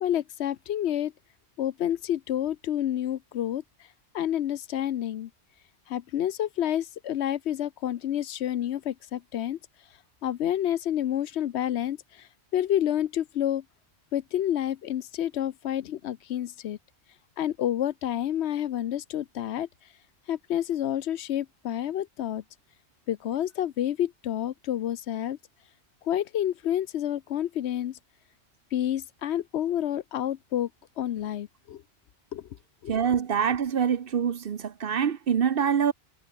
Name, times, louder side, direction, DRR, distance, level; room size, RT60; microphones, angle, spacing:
voice 1, 0.0-1.1 1.6-3.6 4.1-5.3 5.9-9.6 10.2-13.6 14.1-16.8 17.4-19.7 20.3-22.4 23.1-25.4 26.0-28.0 28.7-30.7 31.0-31.8 32.3-32.5 32.8-32.9, left 11 dB, 70° left, 0.9 m, -29 dB
voice 2, 32.9-35.9, right 7 dB, 55° right, 1.0 m, -25 dB
omnidirectional pair, 1.2 m